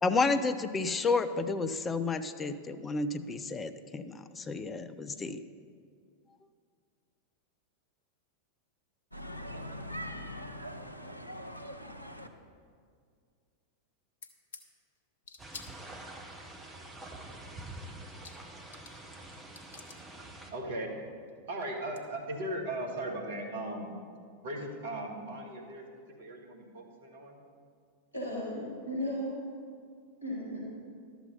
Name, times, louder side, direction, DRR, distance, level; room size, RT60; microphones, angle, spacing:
voice 1, 0.0-5.4, left 3 dB, 15° left, 10 dB, 0.5 m, -31 dB
sound 1, 9.1-12.3, equal, 85° left, 0.6 m, -42 dB
sound 2, 14.2-14.7 15.2-16.2 17.7-17.8 18.0-19.1 19.3-20.0 21.3-21.4 21.6-22.0, left 5 dB, 65° left, 0.9 m, -49 dB
sound 3, 15.4-20.5, right 1 dB, 15° right, 1.2 m, -46 dB
voice 2, 20.2-20.9 21.5-23.9 24.4-25.9 26.2-27.4, right 1 dB, 55° right, 1 dB, 1.8 m, -38 dB
voice 3, 28.1-29.4 30.2-30.6, equal, 85° right, -6 dB, 3.0 m, -35 dB
12.0 x 7.1 x 5.4 m, 2.1 s
figure-of-eight pair, 90°, 0 cm